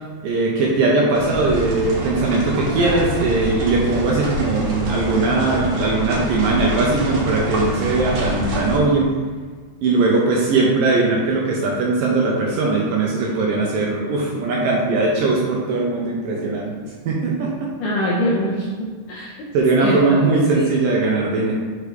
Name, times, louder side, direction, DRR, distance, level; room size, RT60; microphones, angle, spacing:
voice 1, 0.2-9.1 9.8-16.7 17.1-17.7 19.5-21.5, right 3 dB, 80° right, -3 dB, 2.2 m, -19 dB
sound 1, 1.1-8.8, equal, 60° right, 2.1 m, -26 dB
voice 2, 17.8-19.3 19.8-20.2 20.5-20.7, equal, 75° left, -6 dB, 1.9 m, -23 dB
6.5 x 5.7 x 3.3 m, 1.5 s
omnidirectional pair, 4.6 m